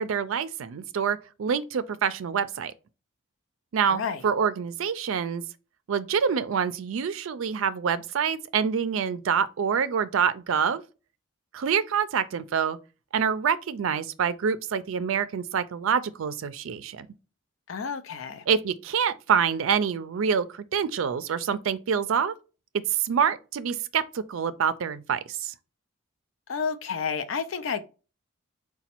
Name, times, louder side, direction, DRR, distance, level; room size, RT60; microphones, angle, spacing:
voice 1, 0.0-2.7 3.7-5.4 5.9-10.8 11.5-12.8 13.1-17.1 18.5-22.3 23.0-25.5, right 7 dB, 75° right, 0.4 m, -26 dB
voice 2, 3.9-4.2 17.7-18.4 26.5-27.8, left 6 dB, 70° left, 0.5 m, -30 dB
4.0 x 2.2 x 4.3 m
head